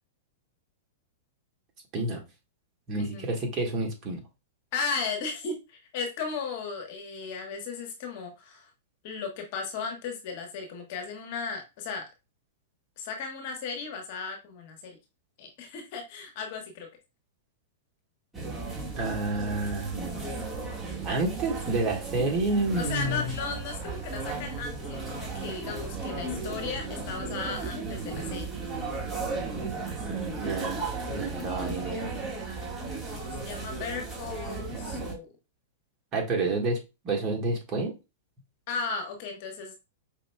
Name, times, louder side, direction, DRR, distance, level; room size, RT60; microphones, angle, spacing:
voice 1, 1.9-2.2 2.9-4.2 19.0-20.2 21.0-23.4 30.3-32.1 36.1-37.9, right 2 dB, 35° right, 0 dB, 1.6 m, -29 dB
voice 2, 4.7-8.7 9.0-12.1 13.0-15.0 15.4-16.9 22.8-28.4 33.1-35.3 38.7-39.8, left 5 dB, 55° left, 4 dB, 1.2 m, -36 dB
sound 1, 18.3-35.1, right 3 dB, 10° right, 1.6 m, -35 dB
5.2 x 2.7 x 2.2 m, 0.27 s
hypercardioid pair, 110°, 0 cm